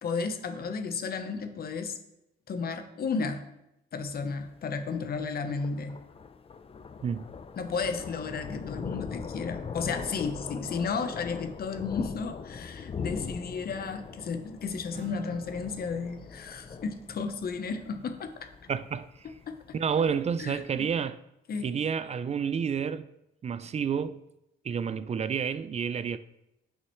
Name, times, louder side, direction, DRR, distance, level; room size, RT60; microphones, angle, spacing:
voice 1, 0.0-2.0 2.5-3.5 3.9-6.0 7.6-18.5 19.5-19.8 20.4-20.8 21.5-21.7, left 5 dB, 50° left, 0.9 m, -33 dB
Thunder, 4.0-20.9, left 5 dB, 30° left, 0.5 m, -41 dB
Acoustic guitar, 14.9-18.6, right 4 dB, 60° right, 1.6 m, -51 dB
voice 2, 18.7-19.3 19.7-21.2 21.6-23.1 23.4-24.2 24.6-26.2, right 7 dB, 35° right, 0.4 m, -30 dB
9.6 x 5.6 x 3.1 m
cardioid pair, 90°, 20 cm